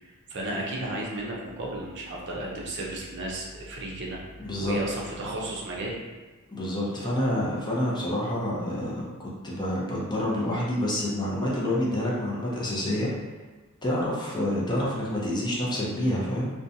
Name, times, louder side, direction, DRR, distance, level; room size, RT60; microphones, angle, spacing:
voice 1, 0.0-4.2 4.6-6.0, right 1 dB, 55° right, -3 dB, 0.5 m, -33 dB
voice 2, 4.4-4.8 6.5-13.1 13.8-16.5, left 1 dB, 20° left, -5 dB, 0.5 m, -28 dB
2.5 x 2.1 x 2.7 m, 1.3 s
head